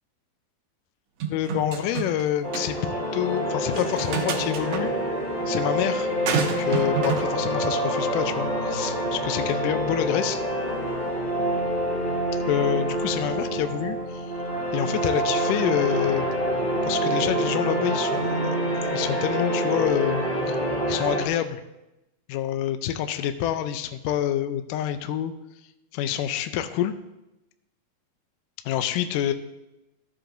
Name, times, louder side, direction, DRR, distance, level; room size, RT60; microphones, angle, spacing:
sound 1, 1.2-2.2 2.5-2.7 3.7-4.8 6.3-7.3, right 6 dB, 85° right, 1.5 m, -28 dB
voice 1, 1.3-4.9 5.5-6.1 6.4-10.4 12.5-14.3 14.7-16.3 16.8-20.6 20.9-21.6 22.3-25.3 25.9-26.9 28.7-29.3, left 11 dB, 90° left, 8 dB, 1.9 m, -27 dB
sound 2, 2.4-21.3, right 1 dB, 40° left, 0.7 m, -27 dB
14.0 x 7.4 x 2.6 m, 0.94 s
omnidirectional pair, 4.4 m